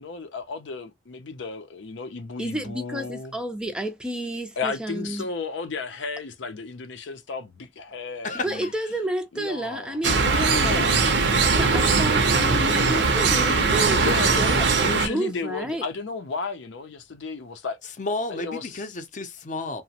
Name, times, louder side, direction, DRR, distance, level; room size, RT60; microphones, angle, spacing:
voice 1, 0.0-3.3 4.6-8.7 9.3-10.0 10.3-11.3 13.9-17.8 18.3-18.8, left 4 dB, 90° left, 0.5 m, -34 dB
voice 2, 2.4-5.3 8.4-10.9 11.4-15.8, right 1 dB, 5° right, 0.3 m, -31 dB
voice 3, 8.2-8.7 18.0-19.8, left 2 dB, 45° left, 0.5 m, -31 dB
sound 1, 10.0-15.1, right 4 dB, 70° right, 0.6 m, -20 dB
2.9 x 2.0 x 2.8 m
head